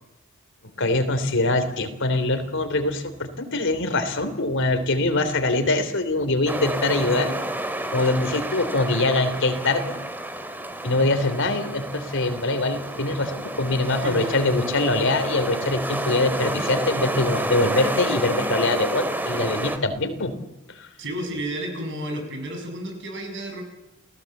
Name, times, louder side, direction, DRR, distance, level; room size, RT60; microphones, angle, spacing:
voice 1, 0.8-7.3 7.9-10.0 10.8-20.3 20.7-20.9, left 2 dB, 60° left, 9 dB, 3.3 m, -23 dB
sound 1, 6.5-19.8, right 1 dB, 10° right, 2.3 m, -30 dB
voice 2, 14.0-14.3 21.0-23.6, right 1 dB, 55° right, 4 dB, 6.7 m, -32 dB
30.0 x 18.0 x 8.0 m, 0.94 s
head